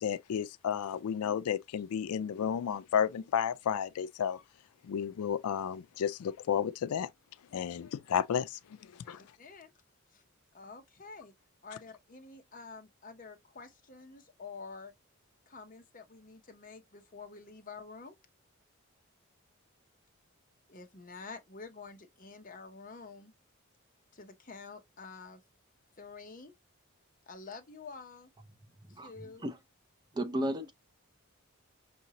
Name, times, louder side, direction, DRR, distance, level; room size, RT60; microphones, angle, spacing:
voice 1, 0.0-4.4 4.8-7.1 7.5-9.2, left 8 dB, 90° left, 0.4 m, -32 dB
voice 2, 9.0-9.7 10.5-11.3 11.6-14.9 15.5-18.2 20.7-23.3 24.1-25.4 26.0-26.5 27.3-28.3 29.0-29.5, left 4 dB, 35° left, 0.8 m, -48 dB
voice 3, 30.1-30.7, right 1 dB, 20° right, 0.5 m, -33 dB
5.6 x 2.7 x 2.8 m
head